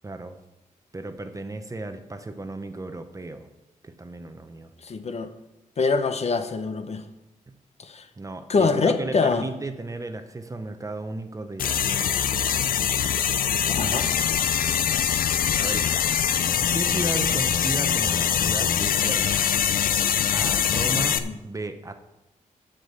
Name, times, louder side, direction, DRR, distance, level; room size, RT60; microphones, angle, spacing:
voice 1, 0.0-0.4 0.9-3.5 3.8-4.7 7.5-7.6 8.2-12.5 15.6-16.1 16.7-19.5 20.3-21.9, right 2 dB, 25° right, 8 dB, 0.8 m, -35 dB
voice 2, 4.8-5.3 5.8-7.0 7.8-8.0 8.5-9.5 13.7-14.1 21.2-21.3, left 4 dB, 50° left, 9 dB, 0.8 m, -24 dB
sound 1, 11.6-21.2, left 8 dB, 85° left, 0.6 m, -23 dB
8.0 x 7.4 x 6.7 m, 0.96 s
wide cardioid pair, 110°, 14 cm